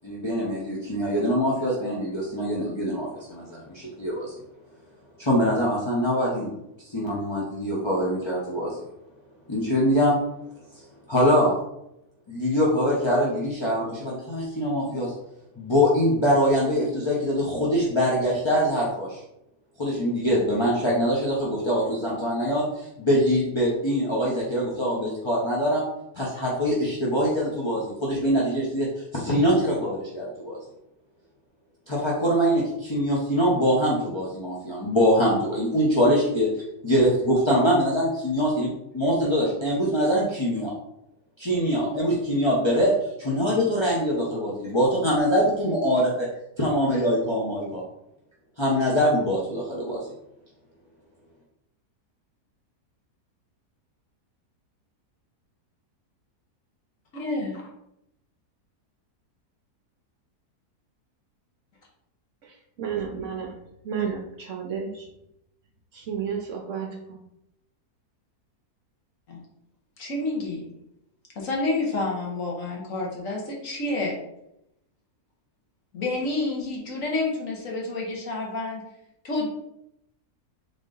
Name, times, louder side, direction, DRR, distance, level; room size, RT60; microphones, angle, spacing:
voice 1, 0.0-4.3 5.2-6.5 6.8-8.8 9.5-10.2 11.1-11.6 12.3-15.1 15.6-19.2 19.8-25.9 26.1-28.9 29.1-30.6 31.9-36.5 36.8-40.7 41.4-42.9 43.2-46.3 46.6-47.8 48.6-50.0, equal, 30° left, -6 dB, 0.5 m, -23 dB
voice 2, 57.1-57.6 69.3-69.4 70.0-70.7 71.3-74.2 75.9-78.8 79.2-79.5, left 2 dB, 60° left, -2 dB, 1.4 m, -29 dB
voice 3, 62.8-63.5 63.8-65.1 65.9-67.2, right 7 dB, 60° right, 1 dB, 0.8 m, -31 dB
3.8 x 3.6 x 3.8 m, 0.83 s
omnidirectional pair, 1.7 m